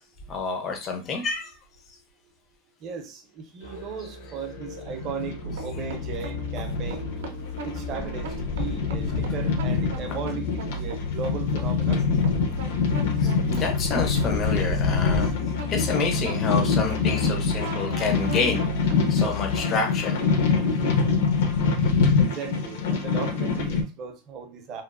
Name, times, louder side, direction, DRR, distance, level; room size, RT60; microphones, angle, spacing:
voice 1, 0.3-1.5 13.2-15.3 15.7-18.6 19.1-20.2, left 4 dB, 25° left, 0.4 m, -28 dB
voice 2, 2.8-7.1 7.6-12.0 22.2-24.8, right 6 dB, 30° right, 0.5 m, -37 dB
Musical instrument, 3.6-15.2, right 1 dB, 90° left, 1.0 m, -44 dB
sound 1, 4.5-23.8, left 5 dB, 75° left, 0.6 m, -25 dB
sound 2, 5.4-19.6, left 2 dB, 85° right, 0.5 m, -33 dB
2.9 x 2.0 x 2.3 m
supercardioid pair, 165°, 0 cm